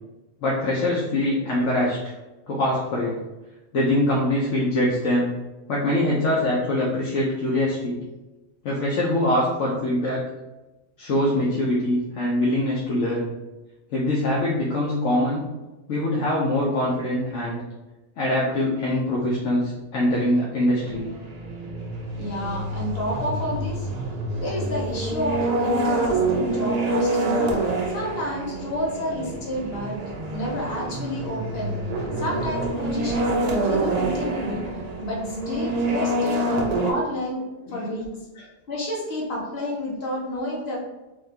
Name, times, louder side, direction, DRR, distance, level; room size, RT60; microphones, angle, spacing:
voice 1, 0.4-2.0 2.5-3.2 3.7-5.3 5.7-8.0 8.6-10.2 11.0-13.3 13.9-15.4 15.9-17.6 18.2-21.1 37.7-37.8 38.4-38.5, left 1 dB, 65° left, -5 dB, 1.0 m, -23 dB
sound 1, 20.8-36.9, right 2 dB, 55° right, 0.4 m, -27 dB
voice 2, 22.2-23.9 24.4-27.4 27.9-30.0 30.3-31.7 32.2-34.7 35.0-36.5 36.8-38.1 38.7-40.8, left 1 dB, 50° left, -4 dB, 1.2 m, -30 dB
3.6 x 2.7 x 3.3 m, 1.1 s
omnidirectional pair, 1.4 m